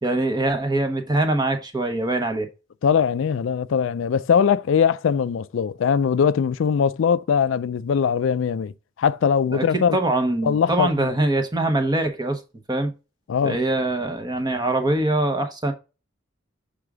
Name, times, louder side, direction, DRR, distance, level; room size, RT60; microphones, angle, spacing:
voice 1, 0.0-2.5 9.5-12.4 12.7-12.9 13.4-15.7, right 2 dB, 20° right, 1.0 m, -23 dB
voice 2, 2.8-8.7 9.0-10.0 10.4-11.1 13.3-13.6, left 7 dB, 70° left, 0.4 m, -21 dB
6.7 x 3.6 x 4.8 m
head